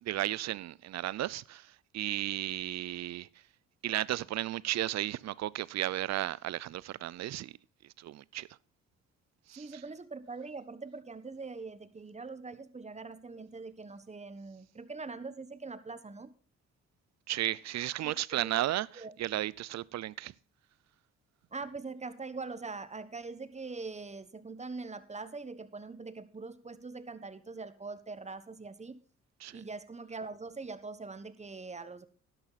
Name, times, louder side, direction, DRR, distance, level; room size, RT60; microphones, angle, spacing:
voice 1, 0.0-3.3 3.8-7.5 7.8-8.5 9.5-9.8 17.3-20.3 29.4-29.6, right 14 dB, 60° right, 0.5 m, -34 dB
voice 2, 9.6-16.3 18.0-18.5 19.0-19.1 21.5-29.0 29.5-32.1, right 4 dB, 20° right, 1.2 m, -43 dB
11.5 x 11.0 x 4.1 m
supercardioid pair, 70°, 30 cm